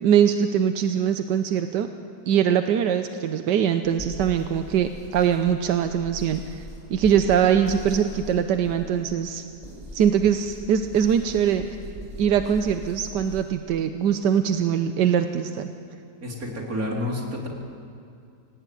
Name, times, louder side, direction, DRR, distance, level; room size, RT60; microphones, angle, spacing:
voice 1, 0.0-1.9 2.3-6.6 6.9-9.4 9.9-11.7 12.2-15.7, right 8 dB, 90° right, 8 dB, 1.5 m, -22 dB
sound 1, 3.8-13.5, equal, 20° right, 7.5 m, -40 dB
voice 2, 16.2-17.5, left 1 dB, 55° right, -1 dB, 4.1 m, -29 dB
26.0 x 18.0 x 9.3 m, 2.5 s
omnidirectional pair, 1.8 m